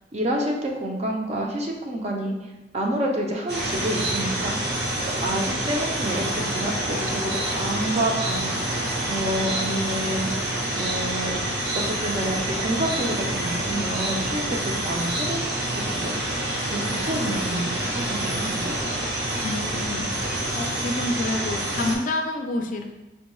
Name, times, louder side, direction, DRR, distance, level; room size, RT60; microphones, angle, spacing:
voice 1, 0.1-4.6 5.2-8.5 9.1-10.3 10.7-11.4 11.7-16.4 16.7-18.7, right 1 dB, 40° right, 0 dB, 0.5 m, -28 dB
sound 1, 3.5-22.0, right 1 dB, 65° right, 0.8 m, -27 dB
voice 2, 19.4-20.0 20.6-22.8, left 2 dB, 50° left, 4 dB, 0.3 m, -28 dB
4.3 x 2.2 x 3.0 m, 1.1 s
head